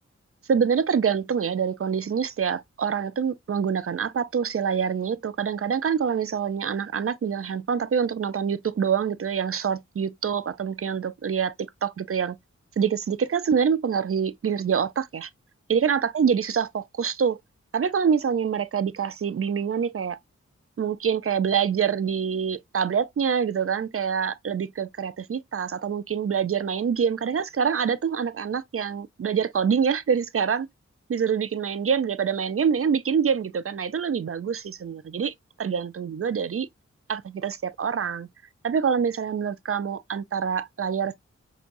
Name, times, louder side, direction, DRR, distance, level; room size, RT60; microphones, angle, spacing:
voice 1, 0.5-12.4 12.8-15.3 15.7-17.4 17.7-20.2 20.8-30.7 31.1-36.7 37.1-38.3 38.6-41.1, right 7 dB, 50° right, 0.5 m, -26 dB
6.0 x 2.2 x 2.6 m
cardioid pair, 55°, 29 cm